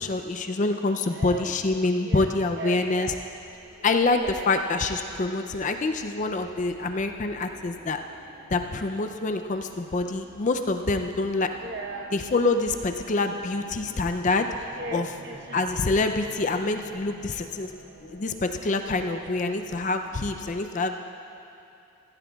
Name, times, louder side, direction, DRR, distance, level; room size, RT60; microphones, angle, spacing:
voice 1, 0.0-3.1 3.8-8.0 8.5-11.5 12.1-14.5 14.9-15.1 15.5-17.7 18.1-21.0, left 3 dB, 35° left, 6 dB, 0.4 m, -26 dB
voice 2, 1.1-1.6 2.0-3.2 4.2-4.5 11.6-12.2 14.7-16.0 16.4-16.5 18.8-19.3, right 2 dB, 50° right, 2 dB, 1.0 m, -38 dB
sound 1, 2.4-20.2, right 1 dB, 80° right, 2.6 m, -51 dB
15.5 x 15.5 x 2.4 m, 2.7 s
head